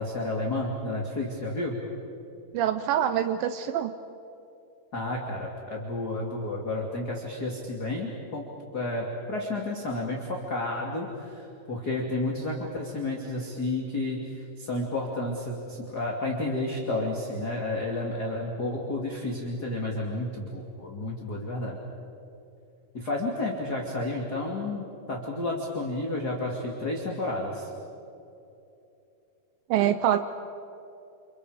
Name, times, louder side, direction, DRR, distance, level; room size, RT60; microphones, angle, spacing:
voice 1, 0.0-1.7 4.9-8.5 8.7-14.2 14.6-21.8 22.9-27.7, left 2 dB, 30° left, -2 dB, 2.4 m, -31 dB
voice 2, 2.5-3.9 29.7-30.2, right 10 dB, 85° right, 10 dB, 2.0 m, -25 dB
30.0 x 29.5 x 5.1 m, 2.8 s
omnidirectional pair, 5.0 m